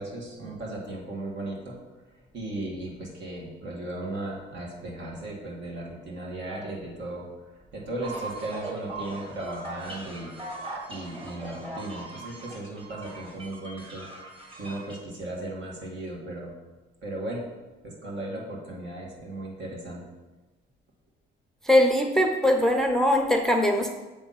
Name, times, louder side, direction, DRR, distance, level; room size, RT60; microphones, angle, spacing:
voice 1, 0.0-1.8 2.3-10.3 10.9-14.1 14.6-16.5 17.0-17.4 17.8-20.0, right 2 dB, 65° right, -3 dB, 2.1 m, -36 dB
sound 1, 8.0-15.0, right 2 dB, 25° right, 1.8 m, -40 dB
voice 2, 21.6-23.9, left 1 dB, ahead, 4 dB, 0.6 m, -21 dB
7.2 x 3.5 x 5.7 m, 1.1 s
cardioid pair, 90°, 20 cm